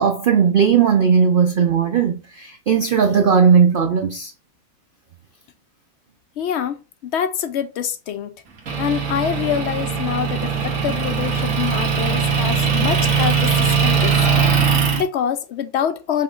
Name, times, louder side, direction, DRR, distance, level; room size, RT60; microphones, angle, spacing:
voice 1, 0.0-4.3, right 6 dB, 75° right, 0.4 m, -17 dB
voice 2, 6.4-8.4 8.8-16.2, left 8 dB, 65° left, 0.7 m, -25 dB
Motor vehicle (road) / Engine, 8.7-15.0, right 6 dB, 60° right, 1.6 m, -20 dB
5.5 x 2.4 x 3.7 m
omnidirectional pair, 1.6 m